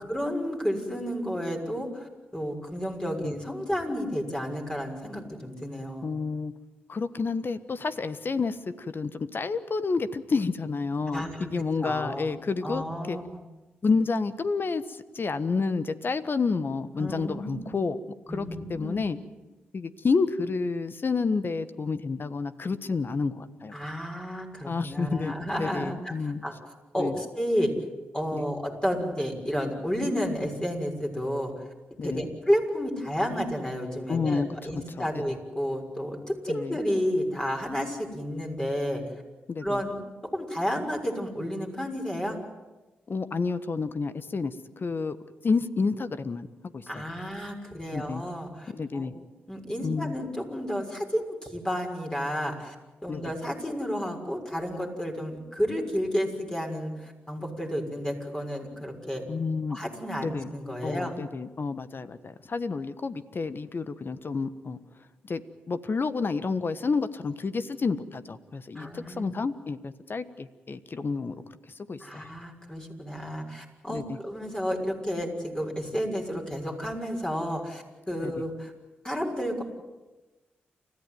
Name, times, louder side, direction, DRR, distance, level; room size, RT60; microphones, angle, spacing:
voice 1, 0.1-6.1 11.1-12.3 12.6-13.4 17.0-17.7 18.3-19.0 23.7-26.5 26.9-27.7 28.1-31.5 32.0-39.0 39.6-39.9 40.3-42.4 46.9-49.1 49.5-52.7 53.0-59.2 59.7-61.2 68.7-69.3 72.0-78.7 79.0-79.6, equal, 15° left, 1 dB, 6.4 m, -31 dB
voice 2, 6.0-6.5 6.9-13.2 13.8-18.0 18.3-19.2 19.7-23.7 24.7-26.4 27.0-27.1 28.3-28.4 32.0-32.2 34.1-35.2 36.5-36.8 39.5-39.8 43.1-44.5 44.8-45.2 45.4-46.5 46.7-47.0 47.9-48.2 48.7-49.1 49.8-50.2 53.1-53.2 59.3-59.8 60.2-60.5 60.8-64.8 65.2-71.3 71.9-72.3 73.9-74.2 78.2-78.3, left 4 dB, 50° left, 13 dB, 1.4 m, -30 dB
29.0 x 14.0 x 9.4 m, 1.1 s
supercardioid pair, 40°, 5 cm